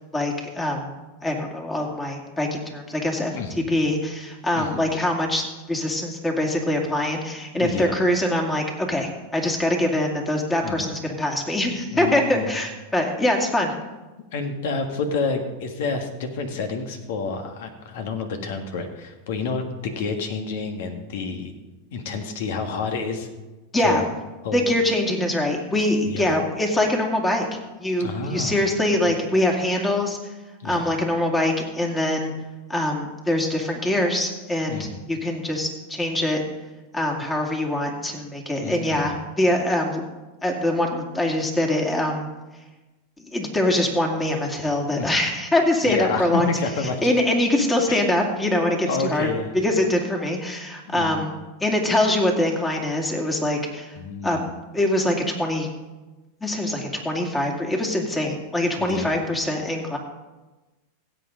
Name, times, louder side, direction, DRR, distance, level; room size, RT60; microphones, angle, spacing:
voice 1, 0.1-0.9 1.2-3.4 3.7-13.7 23.7-24.0 24.5-27.5 27.8-30.2 30.6-32.3 32.7-36.4 36.9-40.0 40.4-42.3 43.3-46.5 47.0-49.3 49.6-54.0 54.2-54.4 54.7-55.7 56.4-60.0, left 1 dB, 15° left, 1 dB, 2.3 m, -23 dB
voice 2, 3.3-3.7 4.5-4.8 7.6-7.9 10.6-10.9 11.9-12.6 14.3-21.5 21.9-23.3 23.8-24.0 24.4-24.6 25.7-26.3 28.0-28.6 30.6-30.9 34.7-35.0 38.6-39.2 44.9-45.1 45.8-47.0 47.9-48.0 48.9-49.5 50.9-51.2 54.0-54.5 58.8-59.1, left 4 dB, 70° left, 6 dB, 1.7 m, -29 dB
16.5 x 8.0 x 3.8 m, 1.2 s
hypercardioid pair, 115°, 0 cm